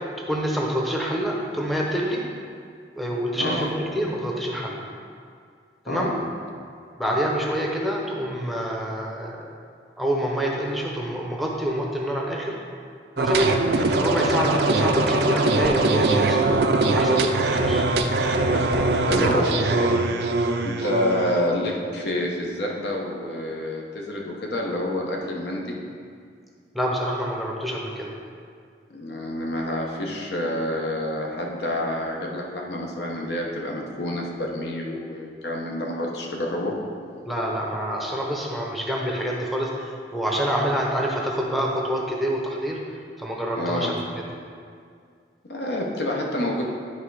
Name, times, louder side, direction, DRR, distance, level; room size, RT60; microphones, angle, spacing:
voice 1, 0.3-2.2 2.9-4.8 5.8-6.1 7.0-9.5 10.0-12.5 13.2-13.5 14.0-16.4 16.9-17.8 26.7-28.1 37.2-42.8 43.2-43.9, equal, ahead, -2 dB, 0.7 m, -26 dB
voice 2, 5.9-6.2 18.5-20.0 20.6-25.8 28.9-36.7 43.6-43.9 45.4-46.6, left 1 dB, 70° left, -1 dB, 1.0 m, -28 dB
sound 1, 13.2-21.5, right 2 dB, 65° right, 0.5 m, -22 dB
10.0 x 3.4 x 4.8 m, 2.2 s
head